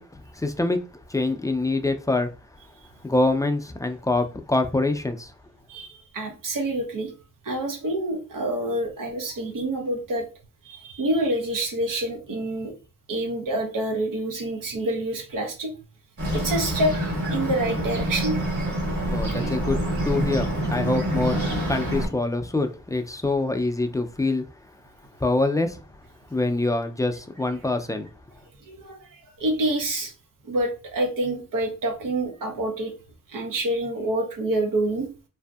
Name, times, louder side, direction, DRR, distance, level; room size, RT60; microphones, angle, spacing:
voice 1, 0.1-0.8 1.1-2.3 3.0-5.3 19.1-19.8 20.0-21.4 21.7-24.5 25.2-25.8 26.3-28.1, left 2 dB, 10° left, 0.3 m, -25 dB
voice 2, 5.7-7.1 7.4-10.3 10.6-12.7 13.1-15.7 16.3-16.9 17.3-18.4 28.6-30.1 30.4-32.9 33.3-35.1, right 1 dB, 90° right, 0.8 m, -27 dB
Bird, 16.2-22.1, right 1 dB, 60° right, 1.5 m, -26 dB
2.6 x 2.5 x 2.3 m
cardioid pair, 60°, 32 cm